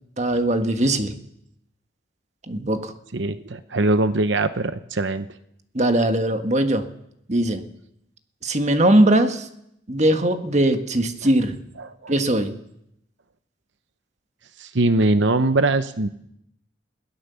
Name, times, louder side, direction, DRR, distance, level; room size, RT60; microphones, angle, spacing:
voice 1, 0.2-1.1 2.5-2.9 5.7-6.9 7.3-7.6 8.4-9.5 9.9-11.5 12.1-12.6, right 1 dB, 35° right, 7 dB, 1.6 m, -20 dB
voice 2, 3.1-5.3 11.8-12.2 14.6-16.1, right 2 dB, 75° right, 11 dB, 0.9 m, -22 dB
21.5 x 17.0 x 7.0 m, 0.77 s
head